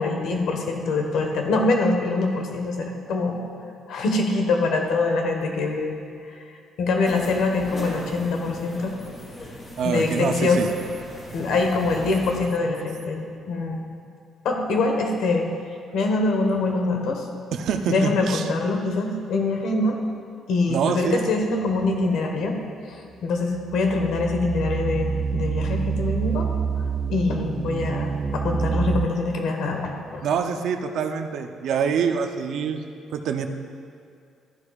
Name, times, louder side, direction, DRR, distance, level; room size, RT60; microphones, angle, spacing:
voice 1, 0.0-3.4 3.9-5.9 6.8-8.9 9.8-10.6 11.3-13.8 14.4-15.5 15.9-17.2 17.9-20.0 20.5-22.6 22.9-26.5 27.1-30.2, left 3 dB, 70° left, 2 dB, 1.3 m, -24 dB
sound 1, 7.1-12.4, equal, 30° left, 2.6 m, -39 dB
voice 2, 9.8-10.7 17.5-18.5 20.7-21.3 30.2-32.8 33.1-33.5, right 7 dB, 70° right, 6 dB, 0.6 m, -25 dB
sound 2, 23.5-29.1, right 6 dB, 35° right, 0.3 m, -27 dB
13.0 x 11.0 x 2.4 m, 2.3 s
cardioid pair, 120°, 0 cm